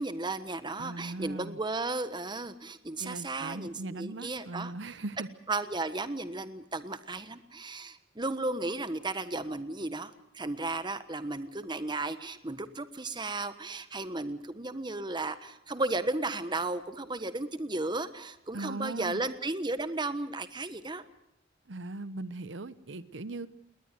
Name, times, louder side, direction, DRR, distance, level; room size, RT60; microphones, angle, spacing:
voice 1, 0.0-4.7 5.5-21.0, right 2 dB, 25° right, 12 dB, 1.3 m, -34 dB
voice 2, 0.8-1.6 3.0-5.3 18.5-19.2 21.7-23.5, right 2 dB, 80° right, 15 dB, 0.8 m, -39 dB
20.0 x 20.0 x 9.2 m, 0.78 s
head